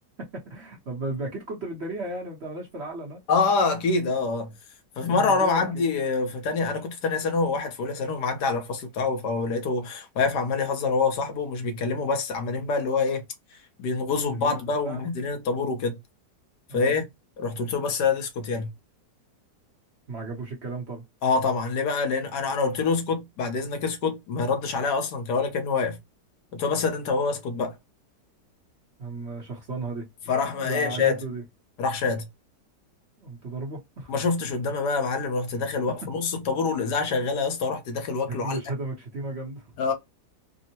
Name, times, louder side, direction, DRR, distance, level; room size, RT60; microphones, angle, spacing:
voice 1, 0.2-3.2 5.1-5.7 14.3-14.6 14.8-15.0 16.7-17.0 20.1-21.0 29.0-30.1 30.5-31.4 33.2-34.1 38.3-39.7, right 2 dB, 45° right, 0.9 m, -34 dB
voice 2, 3.3-4.5 5.0-13.2 13.8-16.0 16.7-17.0 17.4-18.7 21.2-26.0 26.5-27.8 30.3-31.2 31.8-32.3 34.1-38.6 39.8-39.9, left 4 dB, 70° left, 1.3 m, -26 dB
3.6 x 2.0 x 2.8 m
omnidirectional pair, 1.9 m